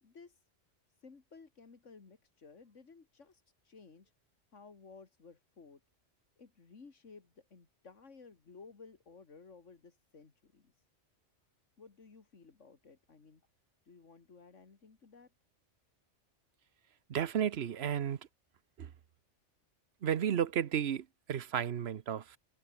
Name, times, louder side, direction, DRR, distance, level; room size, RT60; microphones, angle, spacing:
voice 1, 0.0-0.4 1.0-4.1 4.5-5.8 6.4-10.7 11.8-13.4 13.9-15.3, left 4 dB, 90° left, 2.5 m, -56 dB
voice 2, 17.1-18.2 18.8-18.9 20.0-22.4, right 9 dB, 60° right, 1.1 m, -33 dB
omnidirectional pair, 1.2 m